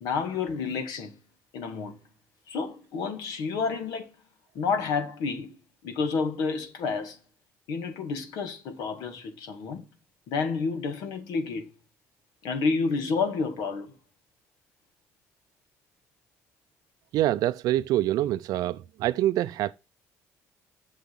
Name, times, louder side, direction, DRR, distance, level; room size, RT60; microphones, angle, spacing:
voice 1, 0.0-1.1 1.5-1.9 2.5-4.1 4.6-5.5 5.8-7.2 7.7-9.8 10.3-11.7 12.4-13.9, left 4 dB, 75° left, 2.1 m, -29 dB
voice 2, 17.1-19.7, right 14 dB, 70° right, 0.4 m, -25 dB
8.1 x 6.3 x 6.1 m
supercardioid pair, 65°, 7 cm